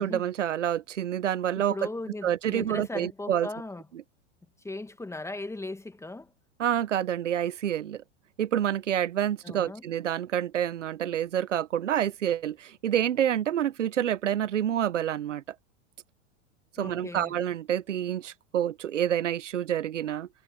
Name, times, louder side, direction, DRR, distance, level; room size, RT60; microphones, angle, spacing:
voice 1, 0.0-1.9 2.2-3.5 3.9-4.0 6.6-8.0 8.4-15.4 16.8-20.3, right 10 dB, 85° right, 1.3 m, -28 dB
voice 2, 1.5-3.8 4.6-6.3 9.4-9.8 16.8-17.3, left 2 dB, 10° left, 1.7 m, -38 dB
hypercardioid pair, 100°, 36 cm